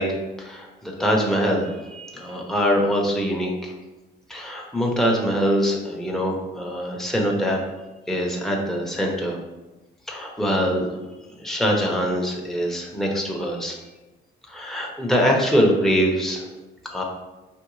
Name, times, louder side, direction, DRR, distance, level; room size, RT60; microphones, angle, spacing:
voice 1, 0.0-3.7 4.3-7.6 8.1-9.4 10.1-11.0 11.4-13.7 14.5-16.5 16.9-17.0, equal, ahead, -2 dB, 0.9 m, -23 dB
5.2 x 3.1 x 3.2 m, 1.1 s
cardioid pair, 90°, 20 cm